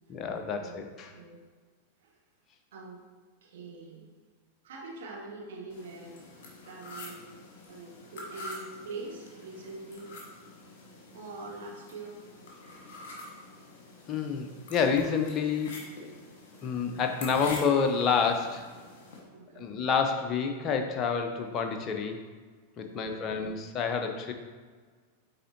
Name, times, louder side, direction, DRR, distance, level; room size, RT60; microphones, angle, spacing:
voice 1, 0.1-1.1 14.1-15.8 16.6-18.6 19.6-22.2 22.8-24.3, left 6 dB, 30° left, 5 dB, 0.7 m, -28 dB
voice 2, 1.1-1.4 2.0-2.2 2.7-3.0 3.4-4.1 4.6-6.2 6.6-7.3 7.7-10.1 11.1-12.2 12.9-13.1 19.3-19.7 22.9-23.5, right 3 dB, 60° right, -1 dB, 1.4 m, -44 dB
sound 1, 5.7-19.2, left 2 dB, 50° left, 1.5 m, -46 dB
9.2 x 3.7 x 2.8 m, 1.5 s
figure-of-eight pair, 90°, 0 cm